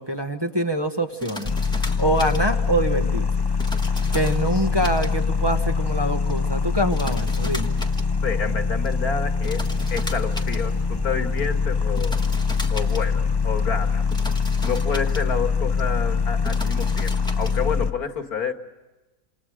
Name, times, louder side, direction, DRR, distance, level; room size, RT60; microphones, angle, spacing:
voice 1, 0.0-1.5 1.8-3.3 4.1-7.7, right 1 dB, 20° right, 4 dB, 1.1 m, -25 dB
sound 1, 1.1-17.8, equal, 5° left, 1.4 m, -39 dB
sound 2, 1.4-17.9, left 5 dB, 20° left, 0.7 m, -23 dB
voice 2, 8.2-12.2 12.7-14.0 14.6-18.5, left 5 dB, 70° left, 6 dB, 2.4 m, -29 dB
28.0 x 27.5 x 5.0 m, 1.1 s
omnidirectional pair, 1.6 m